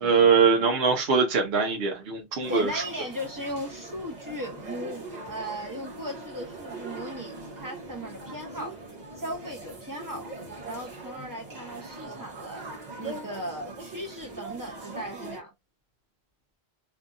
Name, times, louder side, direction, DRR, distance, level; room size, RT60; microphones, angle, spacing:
voice 1, 0.0-2.8, right 5 dB, 70° right, 0.9 m, -22 dB
sound 1, 2.4-15.4, right 2 dB, 45° right, 1.0 m, -41 dB
voice 2, 2.5-8.8 9.1-10.3 10.6-12.6 13.0-15.5, equal, 20° right, 0.8 m, -37 dB
2.7 x 2.5 x 2.3 m
omnidirectional pair, 1.1 m